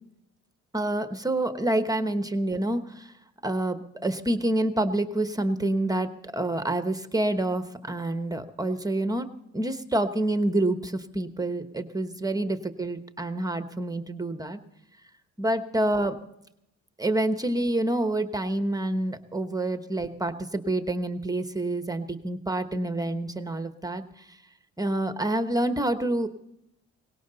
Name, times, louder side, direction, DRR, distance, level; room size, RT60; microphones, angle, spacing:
voice 1, 0.7-3.1 3.4-9.3 9.5-14.6 15.4-16.2 17.0-24.0 24.8-26.3, right 1 dB, 10° right, 9 dB, 1.1 m, -27 dB
19.0 x 17.0 x 4.0 m, 0.80 s
cardioid pair, 90°, 30 cm